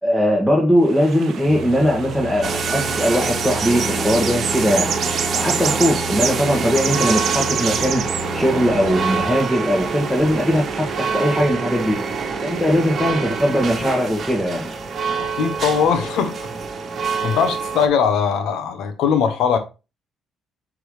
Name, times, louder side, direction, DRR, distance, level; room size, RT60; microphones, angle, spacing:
voice 1, 0.0-4.9 5.3-8.0 8.3-12.0 12.4-14.7, equal, 5° left, 1.7 m, -20 dB
sound 1, 0.9-11.4, right 8 dB, 70° right, 0.8 m, -30 dB
Singing, 1.4-9.3, left 1 dB, 45° left, 2.9 m, -33 dB
sound 2, 2.4-17.9, right 5 dB, 50° right, 1.2 m, -26 dB
voice 2, 15.3-16.3 17.2-19.6, left 7 dB, 85° left, 1.1 m, -20 dB
7.9 x 3.8 x 3.3 m
cardioid pair, 90°, 0 cm